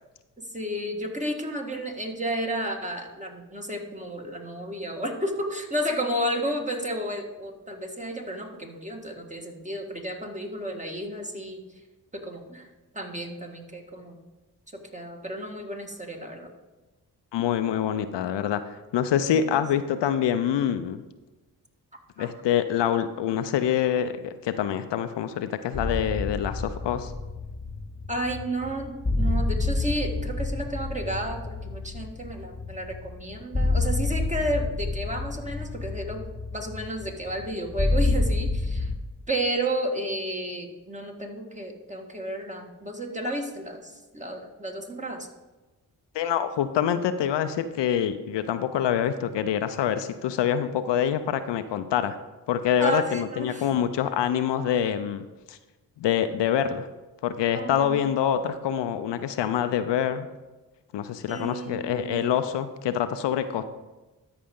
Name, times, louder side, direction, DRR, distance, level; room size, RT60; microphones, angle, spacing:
voice 1, 0.5-11.6 12.1-12.7 12.9-14.2 14.7-16.5 19.3-19.6 22.2-22.3 28.1-36.2 36.5-38.9 39.3-45.3 52.8-53.7 57.5-58.0 61.3-62.4, right 1 dB, 15° right, 2 dB, 1.8 m, -32 dB
voice 2, 17.3-21.0 22.2-27.1 46.1-52.2 52.5-55.6 56.0-56.9 57.2-60.3 60.9-63.6, left 9 dB, 70° left, 10 dB, 0.6 m, -26 dB
sound 1, 25.7-39.0, left 2 dB, 15° left, 1.3 m, -28 dB
13.0 x 5.0 x 3.7 m, 1.2 s
supercardioid pair, 40°, 43 cm